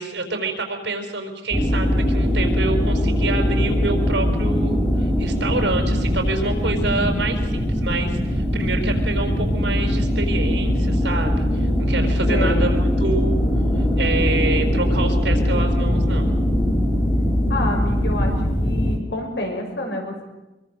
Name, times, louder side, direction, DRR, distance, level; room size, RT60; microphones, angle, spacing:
voice 1, 0.0-13.4 13.8-16.3, right 3 dB, 80° right, 5 dB, 4.9 m, -27 dB
sound 1, 1.5-19.0, equal, 10° left, 2.8 m, -21 dB
voice 2, 12.3-12.8 17.5-18.3 18.6-20.2, left 1 dB, 70° left, 2 dB, 6.0 m, -28 dB
25.0 x 23.5 x 6.6 m, 1.0 s
head